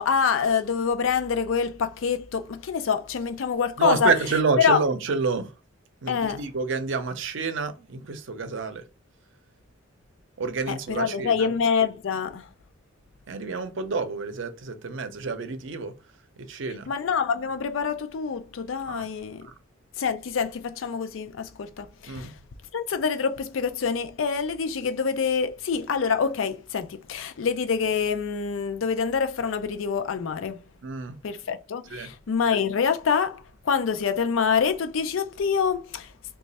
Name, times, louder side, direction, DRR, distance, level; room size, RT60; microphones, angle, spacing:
voice 1, 0.0-4.1 4.6-4.8 6.1-6.4 10.7-12.5 16.9-19.5 20.0-22.3 22.7-30.6 31.2-36.1, left 6 dB, 85° left, 0.4 m, -26 dB
voice 2, 3.8-5.5 6.0-8.8 10.4-11.5 13.3-15.9 16.4-16.9 18.9-19.1 19.4-19.5 22.1-22.3 30.8-31.2 31.9-32.1, right 4 dB, 70° right, 0.6 m, -28 dB
3.1 x 2.3 x 4.0 m
head